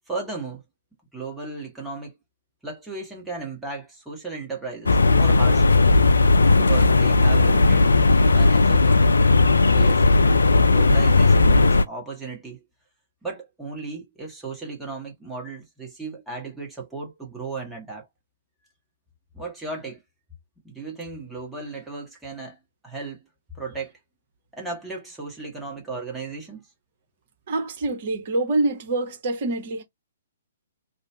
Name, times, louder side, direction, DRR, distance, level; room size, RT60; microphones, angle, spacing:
voice 1, 0.1-0.6 1.1-2.2 2.6-5.8 6.6-8.0 8.3-9.1 9.7-10.1 10.7-12.6 13.2-18.1 19.3-20.0 20.6-22.6 22.8-23.2 23.5-23.9 24.5-26.6, right 3 dB, 5° right, 0.9 m, -35 dB
sound 1, 4.9-11.8, left 3 dB, 75° left, 0.3 m, -16 dB
voice 2, 27.5-29.8, right 2 dB, 45° right, 0.9 m, -25 dB
2.7 x 2.0 x 3.1 m
figure-of-eight pair, 120°, 0 cm